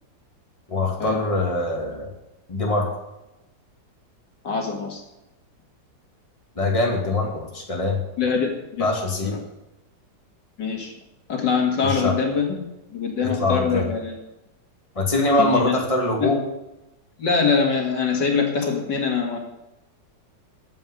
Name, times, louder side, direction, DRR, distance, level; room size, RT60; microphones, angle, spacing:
voice 1, 0.7-2.1 2.5-2.9 6.6-8.0 8.8-9.4 11.8-12.2 13.2-13.9 15.0-16.4, left 2 dB, 20° left, 0 dB, 2.4 m, -23 dB
voice 2, 4.4-5.0 8.2-8.9 10.6-10.9 11.3-14.2 15.4-15.7 16.2-16.4 17.2-19.4, left 5 dB, 70° left, 1 dB, 2.7 m, -23 dB
14.5 x 5.6 x 9.8 m, 0.95 s
omnidirectional pair, 1.9 m